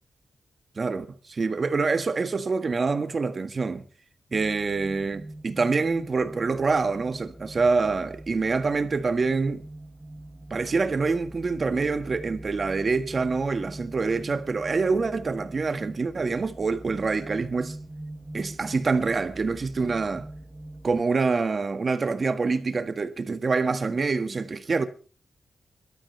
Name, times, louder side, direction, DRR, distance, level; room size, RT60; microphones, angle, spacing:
voice 1, 0.8-3.8 4.3-9.6 10.5-17.8 18.3-20.3 20.8-24.9, right 4 dB, 45° right, 1.6 m, -26 dB
sound 1, 4.3-21.0, right 1 dB, 5° right, 1.3 m, -43 dB
26.5 x 13.0 x 3.3 m
wide cardioid pair, 95°, 0 cm